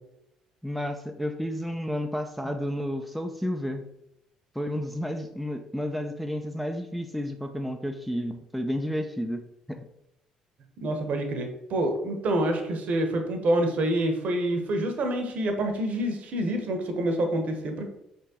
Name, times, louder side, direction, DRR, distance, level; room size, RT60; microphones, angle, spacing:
voice 1, 0.6-3.8 4.5-9.4 9.7-9.9, equal, ahead, 4 dB, 0.4 m, -31 dB
voice 2, 10.8-17.9, right 1 dB, 50° right, 5 dB, 0.9 m, -27 dB
4.9 x 3.6 x 2.9 m, 0.82 s
hypercardioid pair, 50°, 3 cm